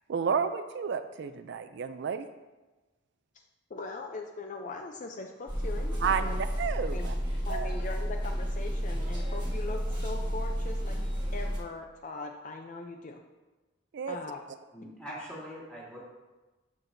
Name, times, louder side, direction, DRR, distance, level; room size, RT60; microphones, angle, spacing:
voice 1, 0.1-2.3 6.0-7.1 7.5-7.7 13.9-14.2, right 6 dB, 60° right, 10 dB, 0.4 m, -31 dB
voice 2, 3.7-6.4 6.9-7.1 7.5-11.0 11.3-13.2 14.1-14.4, left 3 dB, 40° left, 3 dB, 0.5 m, -40 dB
sound 1, 5.5-11.6, equal, 25° right, 1.5 m, -31 dB
voice 3, 14.7-16.1, equal, 5° left, -7 dB, 2.5 m, -42 dB
12.5 x 5.9 x 2.6 m, 1.2 s
head